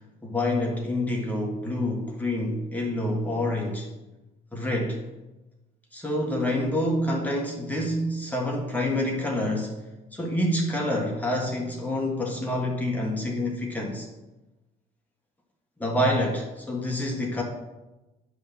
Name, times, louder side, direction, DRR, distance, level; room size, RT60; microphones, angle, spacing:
voice 1, 0.2-3.9 4.5-5.0 5.9-9.8 10.1-14.1 15.8-17.4, left 1 dB, 10° left, -1 dB, 1.5 m, -27 dB
9.9 x 3.6 x 7.0 m, 1.0 s
cardioid pair, 110°, 17 cm